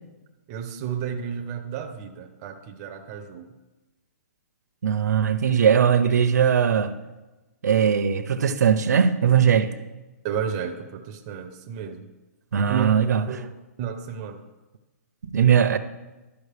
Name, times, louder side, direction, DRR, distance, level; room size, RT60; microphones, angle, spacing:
voice 1, 0.5-3.5 10.2-12.0 12.5-12.9 13.3-13.5 13.8-14.4, right 8 dB, 20° right, 0.4 m, -32 dB
voice 2, 4.8-6.9 7.6-9.7 12.5-13.2 15.3-15.8, right 7 dB, 80° right, 0.6 m, -19 dB
12.0 x 5.0 x 3.3 m
hypercardioid pair, 170°, 9 cm